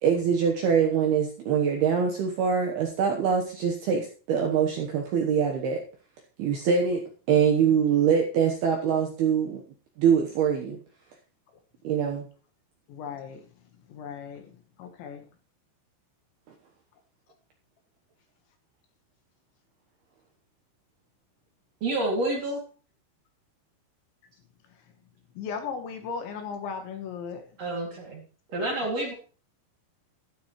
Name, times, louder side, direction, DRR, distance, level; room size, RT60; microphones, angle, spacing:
voice 1, 0.0-5.8 6.4-9.6 10.0-10.8 11.8-12.3, right 7 dB, 70° right, 1 dB, 2.5 m, -24 dB
voice 2, 12.9-13.5 13.9-15.2 25.4-27.5, left 6 dB, 70° left, 6 dB, 3.3 m, -36 dB
voice 3, 21.8-22.6 27.6-28.2 28.5-29.1, right 2 dB, 40° right, -1 dB, 2.9 m, -28 dB
12.5 x 12.5 x 3.1 m, 0.38 s
omnidirectional pair, 6.0 m